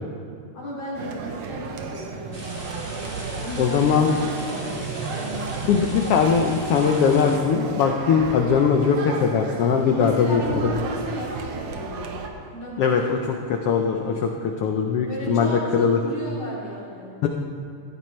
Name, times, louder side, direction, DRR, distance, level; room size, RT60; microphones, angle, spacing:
voice 1, 0.5-2.8 3.4-5.7 10.0-12.1 12.5-13.0 15.1-17.1, left 1 dB, 50° left, -6 dB, 3.7 m, -34 dB
sound 1, 0.9-12.3, right 4 dB, 65° right, 1.9 m, -33 dB
sound 2, 2.3-7.4, equal, 30° right, 0.4 m, -40 dB
voice 2, 3.6-4.1 5.7-10.4 10.8-10.9 12.8-13.2 13.5-16.0 17.2-17.3, left 6 dB, 90° left, 3 dB, 1.3 m, -20 dB
16.0 x 14.5 x 3.2 m, 2.3 s
omnidirectional pair, 3.6 m